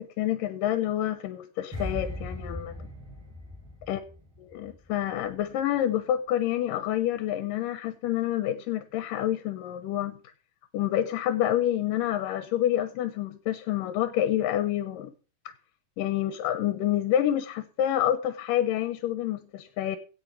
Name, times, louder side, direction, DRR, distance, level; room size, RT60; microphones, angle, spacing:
voice 1, 0.0-2.7 3.9-4.0 4.5-10.2 10.7-15.1 16.0-20.0, left 11 dB, 85° left, 9 dB, 2.5 m, -28 dB
sound 1, 1.7-4.9 5.2-5.4, left 1 dB, 5° right, 4.3 m, -38 dB
16.5 x 6.3 x 4.4 m, 0.36 s
omnidirectional pair, 3.8 m